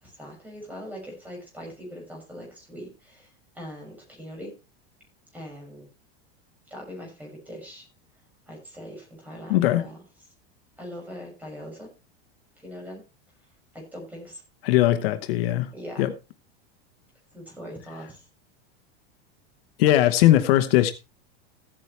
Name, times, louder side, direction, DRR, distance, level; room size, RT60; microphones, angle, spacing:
voice 1, 0.0-3.3 3.5-4.5 5.3-5.9 6.7-7.8 8.5-10.0 10.8-11.9 12.6-13.0 13.7-14.4 15.7-16.0 17.3-18.3, equal, 5° right, 6.4 m, -41 dB
voice 2, 9.5-9.9 14.6-15.7 16.0-16.1 19.8-20.9, left 14 dB, 60° left, 1.1 m, -20 dB
15.0 x 9.1 x 3.3 m
supercardioid pair, 160°, 32 cm